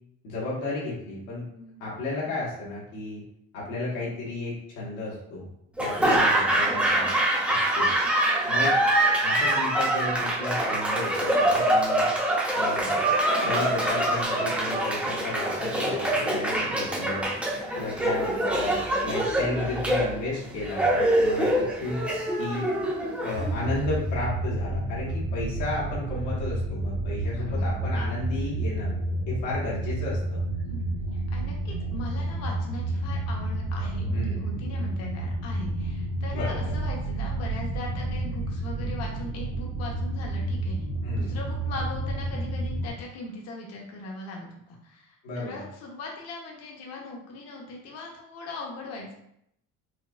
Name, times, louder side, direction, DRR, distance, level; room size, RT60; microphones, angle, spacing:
voice 1, 0.2-1.4 1.8-3.2 3.5-5.5 5.8-7.1 7.5-7.9 8.5-8.7 9.2-12.0 12.5-13.0 13.4-17.3 17.8-22.0 22.4-22.7 23.2-28.9 29.3-30.4 34.1-34.6 36.3-36.8 41.0-41.4 45.2-45.6, left 2 dB, 85° left, -7 dB, 1.4 m, -33 dB
Laughter / Applause, 5.8-23.9, right 1 dB, 5° right, 0.6 m, -25 dB
sound 1, 23.3-42.9, right 2 dB, 50° right, 1.0 m, -30 dB
voice 2, 27.2-27.7 30.6-30.9 31.1-40.8 41.1-49.1, left 2 dB, 50° left, -1 dB, 0.9 m, -40 dB
4.4 x 2.3 x 2.4 m, 0.75 s
cardioid pair, 155°, 32 cm